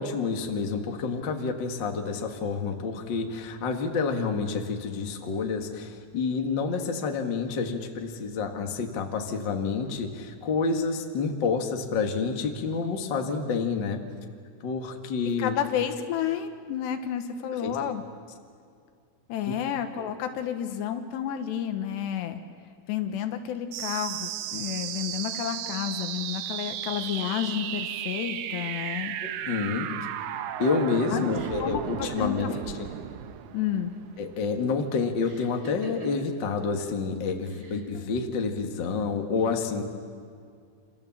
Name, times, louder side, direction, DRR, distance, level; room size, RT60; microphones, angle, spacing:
voice 1, 0.0-14.0 14.6-15.5 17.6-17.7 19.4-19.5 29.2-29.9 30.6-32.9 34.2-39.8, left 4 dB, 45° left, 3 dB, 1.4 m, -29 dB
voice 2, 15.4-18.0 19.3-22.4 22.9-29.2 31.1-31.3 31.6-32.5 33.5-33.9, left 10 dB, 75° left, 7 dB, 3.3 m, -31 dB
sound 1, 23.7-34.7, right 11 dB, 85° right, 3.3 m, -35 dB
sound 2, 29.6-33.2 33.4-34.1 35.2-36.4 37.4-38.0, equal, 35° right, 4.2 m, -46 dB
27.5 x 27.5 x 7.4 m, 2.2 s
omnidirectional pair, 5.1 m